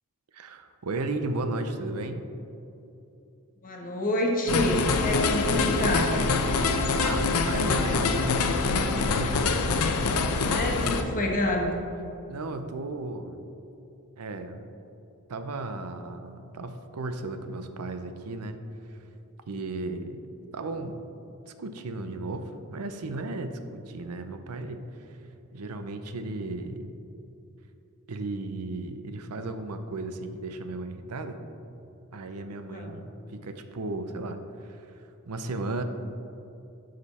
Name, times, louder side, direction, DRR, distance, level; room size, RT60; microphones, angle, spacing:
voice 1, 0.3-2.2 7.0-8.5 8.9-9.8 10.6-10.7 12.3-13.4 14.2-14.7 15.3-18.6 19.5-20.2 20.5-21.0 21.6-24.8 25.5-27.0 28.1-31.4 32.1-34.9 35.3-35.8, right 2 dB, 85° right, 8 dB, 0.6 m, -35 dB
voice 2, 3.6-6.1 10.5-11.7 32.7-33.0, left 1 dB, 40° left, 0 dB, 1.3 m, -27 dB
sound 1, 4.5-11.0, left 3 dB, 90° left, 0.7 m, -25 dB
11.0 x 5.2 x 4.2 m, 2.9 s
head